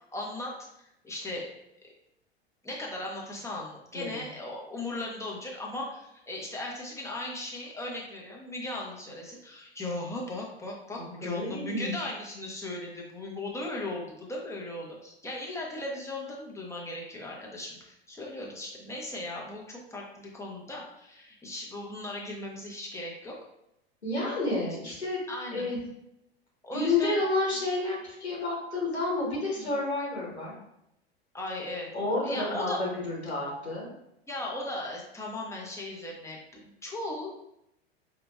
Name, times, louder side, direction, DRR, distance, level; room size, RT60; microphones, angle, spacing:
voice 1, 0.1-1.5 2.6-23.4 25.3-25.7 26.6-27.2 29.6-29.8 31.3-31.9 32.2-32.8 34.3-37.4, left 2 dB, 10° left, -2 dB, 0.9 m, -37 dB
voice 2, 11.2-11.9 24.0-25.2 25.5-25.8 26.7-30.5 31.9-33.9, left 2 dB, 85° left, -5 dB, 1.4 m, -30 dB
5.1 x 2.9 x 2.4 m, 0.81 s
figure-of-eight pair, 80°, 32 cm